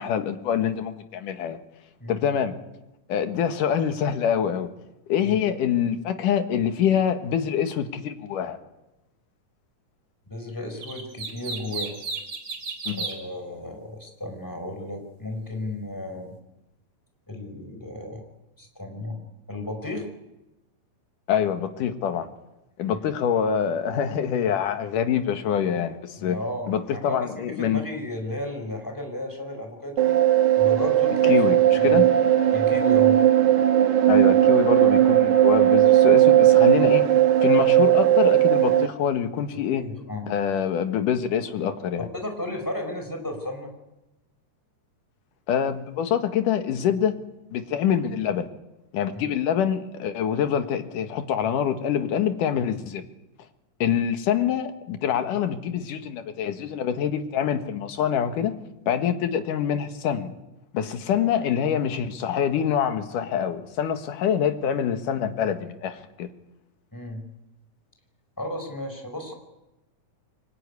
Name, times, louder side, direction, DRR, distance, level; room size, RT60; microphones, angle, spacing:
voice 1, 0.0-1.6 2.1-2.5 3.1-4.7 5.1-8.6 12.9-13.0 21.3-22.3 22.8-26.4 26.7-27.9 31.2-32.1 34.1-37.1 37.4-39.8 40.3-42.1 45.5-47.2 47.5-48.5 48.9-53.0 53.8-58.6 58.9-60.3 60.7-66.3, left 8 dB, 90° left, 8 dB, 3.1 m, -25 dB
voice 2, 10.3-12.0 13.0-16.3 17.3-18.2 18.6-19.2 19.5-20.1 26.2-27.2 27.4-30.1 30.6-32.1 32.5-33.2 39.7-40.3 42.1-43.7 49.1-49.2 53.8-54.0 66.9-67.2 68.4-69.3, left 1 dB, 5° left, 4 dB, 4.5 m, -34 dB
sound 1, 10.8-13.2, right 4 dB, 45° right, 4.1 m, -33 dB
sound 2, 30.0-38.9, right 12 dB, 70° right, 2.6 m, -17 dB
24.5 x 20.0 x 9.8 m, 0.98 s
omnidirectional pair, 3.6 m